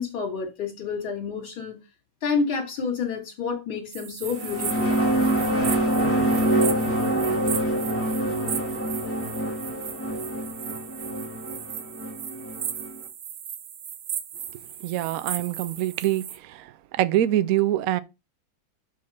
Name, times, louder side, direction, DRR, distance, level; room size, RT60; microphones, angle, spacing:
voice 1, 0.0-1.8 2.2-5.0, left 5 dB, 75° left, 3.4 m, -29 dB
sound 1, 3.9-16.4, right 9 dB, 60° right, 1.0 m, -36 dB
sound 2, 4.2-12.9, right 1 dB, 5° left, 1.9 m, -25 dB
voice 2, 14.8-16.7 16.9-18.0, right 13 dB, 90° right, 0.7 m, -24 dB
5.7 x 4.8 x 5.8 m
omnidirectional pair, 2.3 m